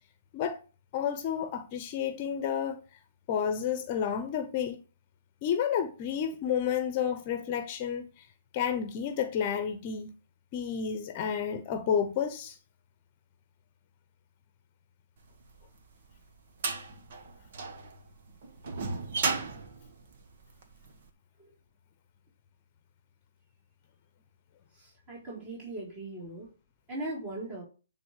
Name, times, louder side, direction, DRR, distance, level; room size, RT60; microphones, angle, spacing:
voice 1, 0.9-2.8 3.3-4.8 5.4-8.3 8.5-10.1 10.5-12.6, left 8 dB, 35° left, 0.9 m, -30 dB
sound 1, 15.6-20.9, right 4 dB, 50° right, 1.5 m, -35 dB
voice 2, 24.7-26.5 26.9-27.6, right 2 dB, 30° right, 4.3 m, -39 dB
9.6 x 3.8 x 6.7 m
hypercardioid pair, 145°, 0 cm